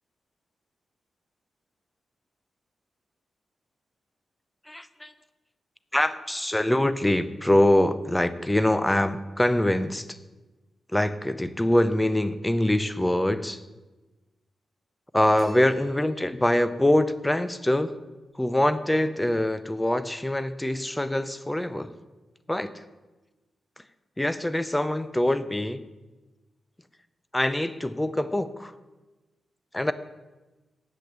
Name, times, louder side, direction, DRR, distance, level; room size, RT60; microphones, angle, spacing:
voice 1, 4.7-5.1 5.9-10.2 10.9-13.6 15.1-17.9 18.4-21.9 22.5-22.8 24.2-25.8 27.3-28.8 29.7-29.9, left 1 dB, 10° left, 13 dB, 0.5 m, -24 dB
sound 1, 15.4-16.6, equal, 20° right, 3.6 m, -51 dB
8.9 x 7.9 x 7.3 m, 1.2 s
wide cardioid pair, 125°, 0 cm